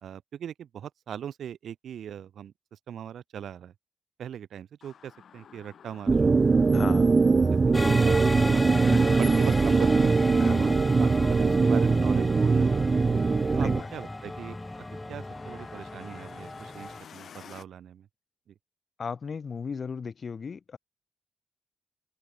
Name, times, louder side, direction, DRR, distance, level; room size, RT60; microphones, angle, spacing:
voice 1, 0.0-3.7 4.2-6.3 6.8-7.0 7.7-8.6 9.2-10.2 10.6-12.9 13.5-18.1 18.5-18.6, right 9 dB, 75° right, 2.4 m, -40 dB
sound 1, 4.8-17.6, left 8 dB, 55° left, 5.9 m, -50 dB
sound 2, 6.1-13.8, right 4 dB, 25° right, 0.3 m, -22 dB
voice 2, 6.7-7.1 8.8-9.2 10.4-10.7 13.6-13.9 19.0-20.8, left 5 dB, 40° left, 3.1 m, -36 dB
sound 3, 7.7-17.0, left 1 dB, 10° left, 0.6 m, -35 dB
wide cardioid pair, 170°, 0 cm